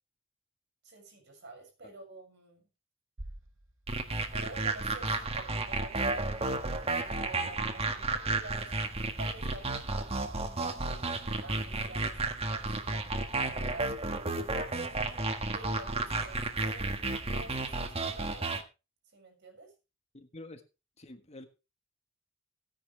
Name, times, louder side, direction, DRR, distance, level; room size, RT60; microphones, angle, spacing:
voice 1, 0.8-2.6 4.3-6.3 6.6-13.0 13.3-14.0 15.5-18.7 19.1-19.7, right 2 dB, 60° right, 7.0 m, -48 dB
sound 1, 3.2-5.3, right 1 dB, 85° right, 1.9 m, -49 dB
sound 2, 3.9-18.6, right 3 dB, 30° right, 1.6 m, -32 dB
voice 2, 20.1-20.6 21.0-21.5, left 2 dB, 35° left, 1.5 m, -47 dB
18.0 x 10.0 x 3.4 m
head